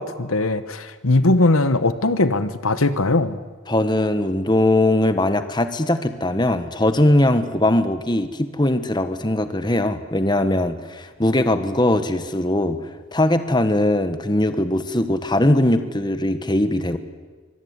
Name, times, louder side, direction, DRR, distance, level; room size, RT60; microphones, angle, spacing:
voice 1, 0.0-3.4, left 2 dB, 80° left, 12 dB, 1.3 m, -20 dB
voice 2, 3.7-12.8 13.1-17.0, left 1 dB, 20° left, 9 dB, 1.4 m, -20 dB
25.0 x 22.0 x 9.6 m, 1.4 s
head